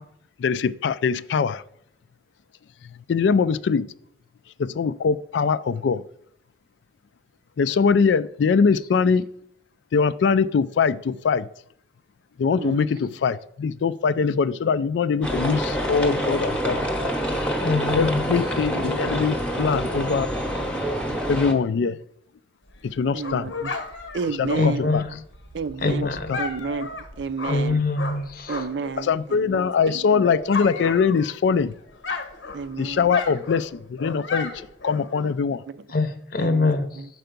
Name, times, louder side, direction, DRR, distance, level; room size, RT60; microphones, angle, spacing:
voice 1, 0.4-1.6 3.1-3.9 4.6-6.0 7.6-9.2 9.9-11.5 12.4-16.9 18.0-20.3 21.3-22.0 22.8-23.5 24.4-25.0 26.0-26.4 29.0-31.7 32.8-34.5 34.8-35.6, left 5 dB, 75° left, 0.3 m, -22 dB
voice 2, 12.6-12.9 23.1-23.7 24.1-24.9 25.5-26.1 26.4-26.9 27.2-27.8 28.5-30.1 32.5-33.1 35.7-35.8 36.4-37.1, right 5 dB, 70° right, 0.4 m, -31 dB
sound 1, 15.2-21.5, equal, 5° left, 0.8 m, -26 dB
voice 3, 17.6-18.2 24.6-25.2 25.8-26.4 27.5-28.6 35.9-37.0, left 3 dB, 50° left, 0.7 m, -24 dB
Dog, 22.7-29.0 29.3-31.6 31.9-35.3, left 4 dB, 90° left, 1.1 m, -34 dB
6.8 x 4.5 x 5.2 m
head